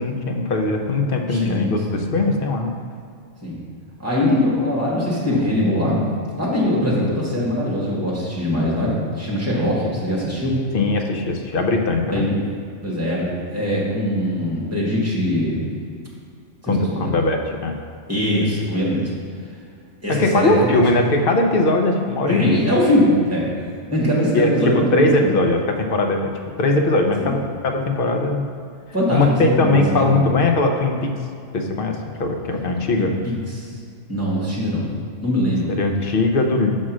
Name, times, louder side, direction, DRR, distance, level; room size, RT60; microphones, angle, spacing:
voice 1, 0.0-2.7 10.7-12.3 16.7-17.8 20.1-22.6 24.3-26.3 26.6-28.4 29.1-31.1 31.5-33.1 35.7-36.7, left 2 dB, 55° left, 3 dB, 0.8 m, -20 dB
voice 2, 1.3-2.1 3.4-3.6 4.0-6.1 6.3-10.6 12.1-12.4 12.8-15.8 16.6-17.1 18.1-19.1 20.0-20.8 22.3-23.4 23.9-25.4 27.2-27.4 28.9-30.3 33.0-33.7 34.1-34.9 35.2-35.7, left 1 dB, 10° right, -6 dB, 1.8 m, -22 dB
6.2 x 4.3 x 6.1 m, 2.2 s
omnidirectional pair, 1.3 m